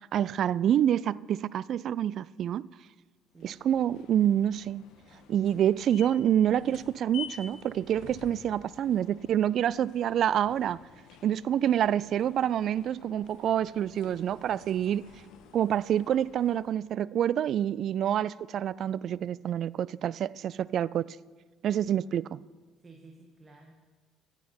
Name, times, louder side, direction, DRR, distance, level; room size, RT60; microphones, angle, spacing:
voice 1, 0.1-2.7 3.4-4.8 5.3-10.8 11.2-15.0 15.5-21.1 21.6-22.4, right 10 dB, 55° right, 0.3 m, -27 dB
sound 1, 3.4-16.9, left 7 dB, 65° left, 1.2 m, -50 dB
voice 2, 21.9-23.7, right 3 dB, 30° right, 1.9 m, -54 dB
15.0 x 9.9 x 5.5 m
hypercardioid pair, 60°, 0 cm